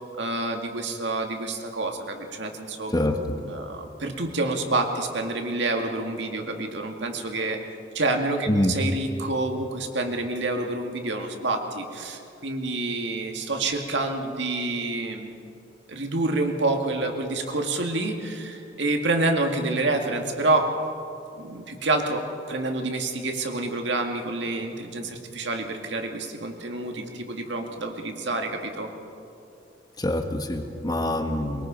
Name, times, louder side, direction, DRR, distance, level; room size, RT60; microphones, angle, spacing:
voice 1, 0.2-2.9 3.4-7.6 7.9-15.3 15.9-20.7 21.4-22.2 22.5-28.9, right 2 dB, 70° right, 3 dB, 2.1 m, -28 dB
voice 2, 30.0-31.7, left 1 dB, 20° left, 5 dB, 1.4 m, -25 dB
22.5 x 22.5 x 5.2 m, 2.6 s
head